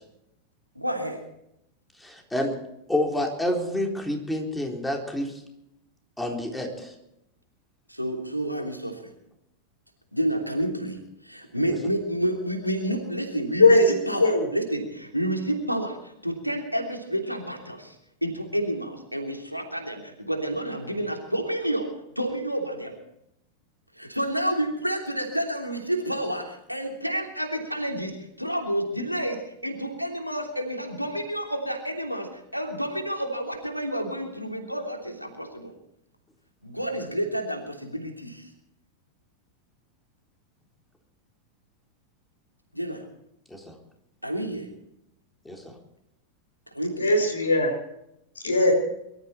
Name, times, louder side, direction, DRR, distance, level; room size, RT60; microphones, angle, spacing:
voice 1, 0.7-1.2 7.9-9.1 10.1-11.0 11.2-17.9 18.2-22.9 24.0-35.7 36.6-38.5 42.7-43.0 44.2-44.7 46.7-47.1, right 1 dB, 90° right, 2 dB, 3.1 m, -29 dB
voice 2, 2.0-2.5 2.9-5.3 6.2-6.9 11.7-11.8 43.5-43.6 45.5-45.6, left 1 dB, 5° left, 1 dB, 3.9 m, -28 dB
voice 3, 13.6-14.5 46.9-47.8 48.4-48.7, left 2 dB, 75° left, 5 dB, 4.7 m, -19 dB
23.5 x 13.5 x 4.5 m, 0.81 s
figure-of-eight pair, 90°, 0 cm